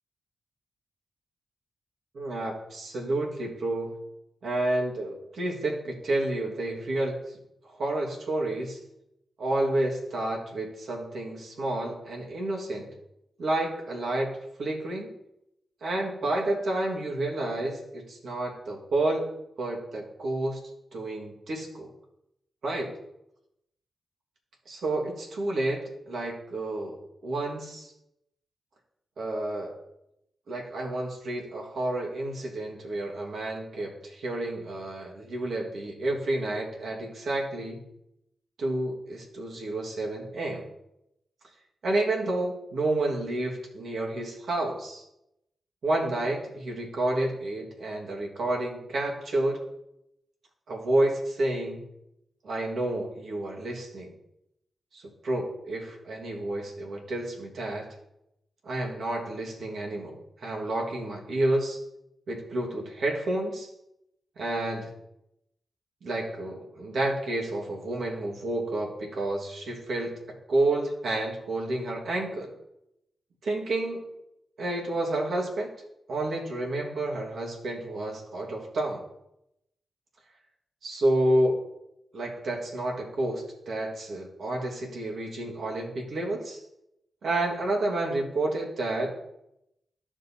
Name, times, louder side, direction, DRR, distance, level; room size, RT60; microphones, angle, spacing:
voice 1, 2.1-4.0 4.4-7.4 7.6-8.8 9.4-12.9 13.4-15.1 15.8-19.2 19.6-20.6 20.9-21.9 22.6-22.9 24.6-27.9 29.2-29.8 30.5-37.8 38.6-40.6 41.8-45.0 45.8-49.6 50.7-51.8 52.4-54.1 54.9-58.0 58.6-61.8 62.3-63.7 64.4-64.9 66.0-72.5 73.4-74.0 74.6-75.7 76.1-79.0 80.8-81.7 82.1-86.6 87.2-89.1, right 1 dB, 75° right, 0 dB, 1.7 m, -30 dB
13.5 x 5.3 x 2.8 m, 0.84 s
supercardioid pair, 45°, 0 cm